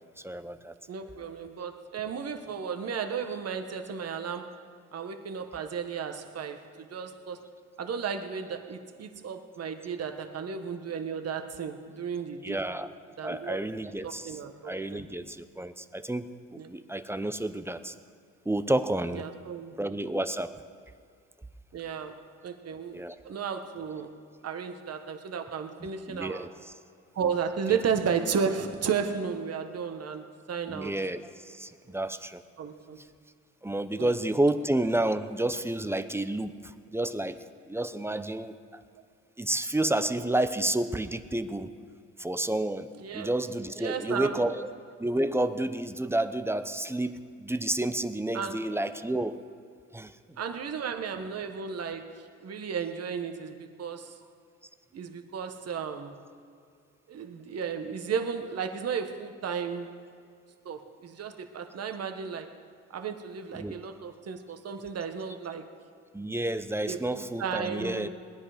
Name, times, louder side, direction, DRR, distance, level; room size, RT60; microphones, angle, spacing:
voice 1, 0.2-0.7 12.4-12.9 13.2-14.4 14.6-17.9 18.5-19.2 19.8-20.6 22.9-23.2 25.8-26.5 27.7-27.8 30.7-32.4 33.6-37.4 37.7-38.8 39.4-41.7 42.2-42.9 43.1-44.7 45.0-49.4 49.9-50.1 63.5-63.7 66.1-68.1, right 1 dB, 10° right, 11 dB, 0.6 m, -30 dB
voice 2, 0.9-4.5 4.9-7.4 7.8-12.6 13.2-13.6 14.0-15.0 16.6-16.7 19.1-19.8 21.7-23.0 23.2-24.2 24.4-26.5 27.1-30.9 31.9-32.0 32.6-33.0 34.0-34.2 43.0-43.3 43.8-44.4 48.3-48.6 50.4-54.2 54.9-56.2 57.1-59.9 60.6-62.6 62.9-65.7 66.9-68.1, right 6 dB, 55° right, 7 dB, 1.3 m, -34 dB
20.5 x 10.0 x 5.1 m, 2.3 s
cardioid pair, 90°, 30 cm